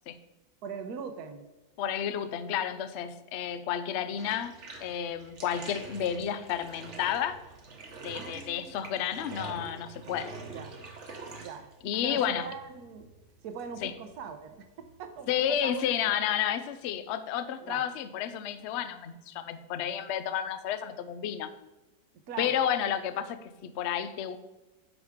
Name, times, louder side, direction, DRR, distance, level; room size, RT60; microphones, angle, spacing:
voice 1, 0.6-1.5 8.1-8.7 10.5-10.8 11.4-11.7 12.0-13.1 13.4-15.8 17.6-17.8 22.3-22.6, right 6 dB, 65° right, 7 dB, 1.3 m, -41 dB
voice 2, 1.8-4.5 4.8-7.4 8.0-10.3 11.8-12.5 13.8-13.9 15.3-21.5 22.4-24.4, left 9 dB, 70° left, 11 dB, 0.6 m, -31 dB
Bathtub (filling or washing), 4.1-15.8, right 3 dB, 45° right, 1.3 m, -46 dB
10.0 x 6.3 x 3.6 m, 1.1 s
omnidirectional pair, 1.9 m